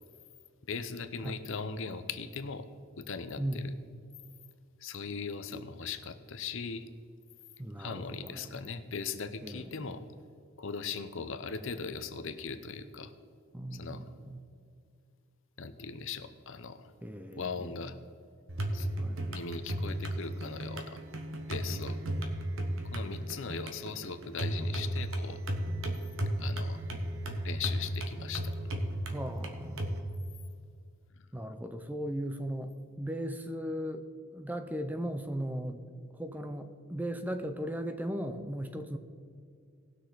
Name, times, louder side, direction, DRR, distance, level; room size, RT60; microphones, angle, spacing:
voice 1, 0.7-2.7 3.0-3.7 4.8-6.8 7.8-10.0 10.6-13.1 13.7-14.0 15.6-16.9 17.3-18.0 18.7-18.9 19.3-21.0 21.5-22.0 22.8-25.4 26.4-26.8 27.4-28.5, left 5 dB, 60° left, 10 dB, 0.7 m, -39 dB
voice 2, 3.4-3.8 7.6-8.5 9.4-9.9 13.5-14.4 17.0-17.7 19.0-19.2 21.7-21.8 29.1-30.1 31.3-34.1 34.3-35.9 36.1-39.0, equal, 10° right, 8 dB, 0.5 m, -37 dB
sound 1, 18.5-30.0, right 1 dB, 60° right, 1.2 m, -35 dB
19.0 x 6.5 x 4.0 m, 2.3 s
head